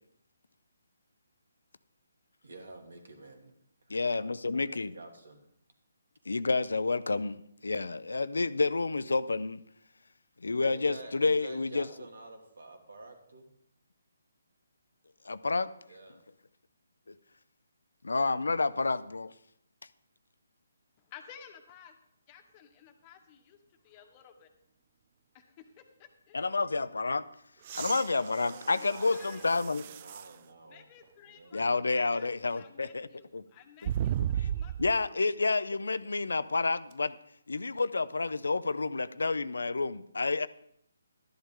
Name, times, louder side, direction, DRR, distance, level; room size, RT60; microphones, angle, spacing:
voice 1, 2.4-3.5 3.9-5.4 10.6-13.5 15.9-16.2 28.1-30.9 31.2-31.6, right 3 dB, 75° right, 4 dB, 2.4 m, -49 dB
voice 2, 3.9-5.0 6.3-9.6 10.4-11.9 15.2-15.7 17.1-17.2 18.0-19.3 26.3-27.3 27.7-29.8 31.5-33.1 33.3-33.4 33.8-33.9 34.2-34.5 34.8-37.2 37.5-40.5, left 3 dB, 80° left, 15 dB, 0.6 m, -29 dB
voice 3, 21.1-21.9 22.3-23.6 23.8-24.5 26.3-26.5 28.7-28.8 29.1-29.4 30.7-31.6 31.9-32.2 32.5-32.9 33.5-34.7, left 8 dB, 25° left, 6 dB, 1.3 m, -53 dB
sound 1, 27.6-30.4 31.0-31.1 33.8-35.1 36.9-37.0, right 10 dB, 35° right, 0.3 m, -35 dB
12.5 x 10.5 x 3.8 m, 0.73 s
figure-of-eight pair, 150°, 0 cm